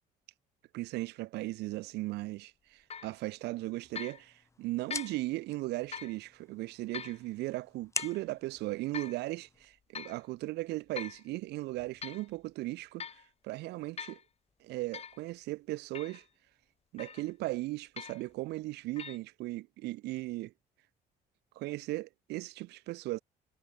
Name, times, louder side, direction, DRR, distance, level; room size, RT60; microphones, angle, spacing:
voice 1, 0.7-13.0 13.4-14.2 14.6-16.2 16.9-20.5 21.6-23.2, right 19 dB, 85° right, 1.0 m, -37 dB
sound 1, 2.9-3.1 4.0-4.2 4.9-5.2 5.9-6.2 6.9-7.2 8.0-8.2 8.9-9.2 9.9-10.2 11.0-11.2 11.8-12.3 13.0-13.3 14.0-14.2 14.9-15.2 15.9-16.2 17.0-17.3 18.0-18.3 19.0-19.2, left 6 dB, 35° left, 3.8 m, -43 dB
sound 2, 3.6-9.7, left 3 dB, 15° left, 3.8 m, -46 dB
cardioid pair, 110°, 17 cm